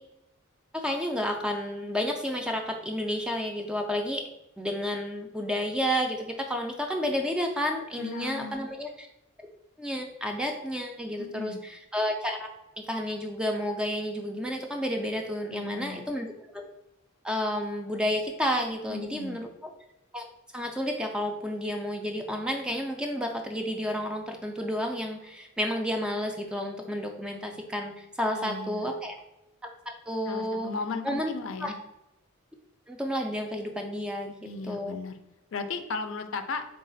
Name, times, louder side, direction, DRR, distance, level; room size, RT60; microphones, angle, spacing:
voice 1, 0.7-4.3 4.6-9.1 9.8-12.5 12.8-16.3 16.5-16.6 17.2-19.7 20.1-20.2 20.5-29.2 30.1-30.7 31.0-31.3 31.6-31.7 32.9-34.4 34.7-35.0, equal, 5° right, 3 dB, 0.3 m, -31 dB
voice 2, 8.0-8.6 11.2-11.6 15.5-16.1 18.9-19.4 28.3-29.0 30.2-31.8 34.4-35.2 35.5-36.7, left 4 dB, 65° left, 8 dB, 0.4 m, -36 dB
4.0 x 2.3 x 3.8 m, 0.93 s
head